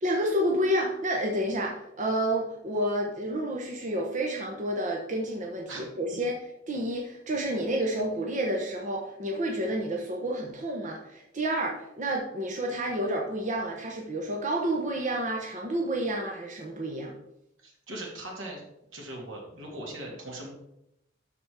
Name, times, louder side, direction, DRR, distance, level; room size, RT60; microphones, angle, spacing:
voice 1, 0.0-6.4 6.7-17.1, right 1 dB, 40° right, 0 dB, 1.0 m, -30 dB
voice 2, 17.6-18.6 18.9-20.5, right 1 dB, 80° right, -1 dB, 2.8 m, -39 dB
12.0 x 4.3 x 4.8 m, 0.83 s
head